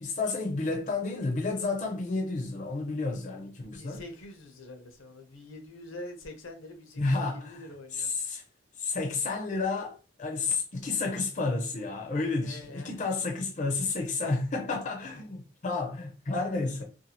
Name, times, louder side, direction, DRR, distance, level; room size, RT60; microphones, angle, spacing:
voice 1, 0.0-4.0 7.0-7.6 7.9-8.4 8.8-16.8, left 3 dB, 35° left, 0.4 m, -31 dB
voice 2, 3.6-8.1 12.4-13.0 16.4-16.8, left 1 dB, 80° left, 0.7 m, -46 dB
2.6 x 2.4 x 2.8 m
head